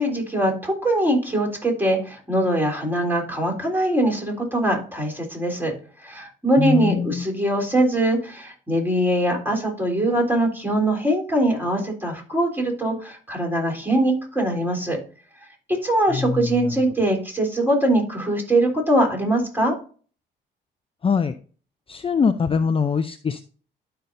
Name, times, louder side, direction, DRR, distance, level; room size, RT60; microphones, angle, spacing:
voice 1, 0.0-5.7 6.0-15.0 15.7-19.8, right 1 dB, 10° right, -1 dB, 3.6 m, -22 dB
voice 2, 6.6-7.2 16.1-16.7 21.0-21.3 21.9-23.5, left 5 dB, 30° left, 10 dB, 0.5 m, -23 dB
12.5 x 5.6 x 2.6 m, 0.40 s
cardioid pair, 90°, 20 cm